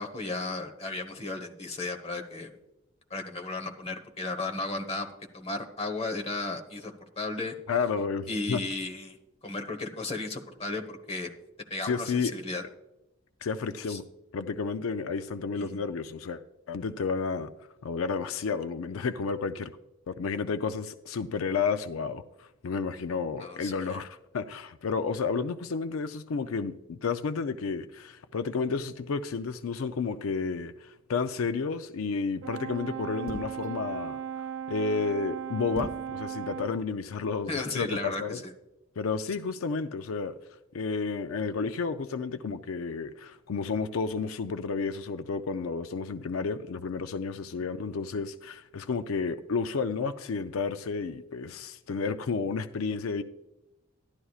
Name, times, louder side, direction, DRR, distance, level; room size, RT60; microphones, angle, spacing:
voice 1, 0.0-2.5 3.1-5.1 5.3-7.5 8.3-11.3 11.7-12.6 13.9-14.0 15.5-15.8 23.4-24.0 37.5-38.5 47.5-47.6, left 3 dB, 30° left, 1.1 m, -34 dB
voice 2, 7.7-8.6 11.8-12.3 13.4-14.0 14.3-16.4 16.7-17.5 17.8-19.7 20.1-34.2 34.7-38.4 39.0-40.3 40.7-53.2, left 5 dB, 85° left, 0.4 m, -31 dB
Brass instrument, 32.4-36.8, right 8 dB, 75° right, 0.4 m, -37 dB
sound 1, 33.3-33.7 35.7-36.1, right 3 dB, 25° right, 4.2 m, -37 dB
12.5 x 11.5 x 2.4 m
head